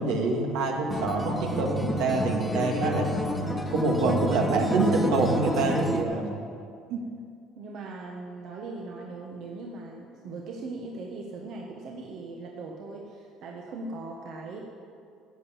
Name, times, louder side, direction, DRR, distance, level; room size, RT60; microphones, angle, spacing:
voice 1, 0.0-3.1 3.7-6.3 6.9-7.0, right 3 dB, 80° right, 1 dB, 2.0 m, -26 dB
Acoustic guitar, 0.9-6.0, equal, 5° left, 1.2 m, -29 dB
voice 2, 7.5-14.6, right 3 dB, 60° right, -1 dB, 1.4 m, -39 dB
13.0 x 8.5 x 7.4 m, 2.4 s
cardioid pair, 120°, 0 cm